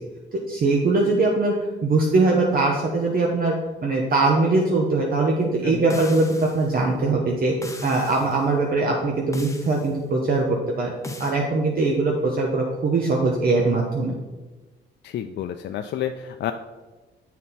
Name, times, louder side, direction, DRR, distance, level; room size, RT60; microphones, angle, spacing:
voice 1, 0.5-1.5 1.8-3.5 3.8-7.5 7.8-10.9 11.2-14.2, right 3 dB, 50° right, -1 dB, 0.9 m, -21 dB
sound 1, 5.9-6.7 7.6-8.3 9.3-9.9 11.0-11.4, left 2 dB, 15° left, 0.8 m, -36 dB
voice 2, 15.0-16.5, left 10 dB, 60° left, 6 dB, 0.4 m, -30 dB
7.5 x 4.2 x 4.1 m, 1.2 s
cardioid pair, 90°, 20 cm